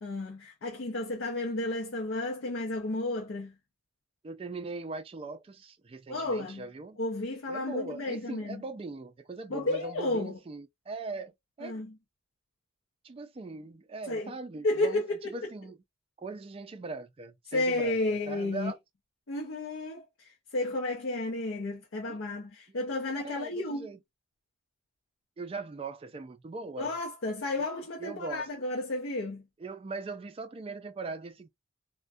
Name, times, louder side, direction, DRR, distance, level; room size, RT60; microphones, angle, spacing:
voice 1, 0.0-3.5 6.1-6.6 7.0-8.6 9.5-10.4 11.6-11.9 14.1-14.3 14.6-15.3 17.5-18.7 19.3-23.9 26.8-29.4, left 2 dB, 65° left, 0.6 m, -32 dB
voice 2, 4.2-7.0 7.5-11.8 13.0-15.0 15.3-15.8 16.2-18.0 18.3-18.8 22.1-22.2 23.2-24.0 25.4-26.9 28.0-28.5 29.6-31.5, right 3 dB, 30° right, 0.3 m, -40 dB
2.3 x 2.1 x 2.5 m
head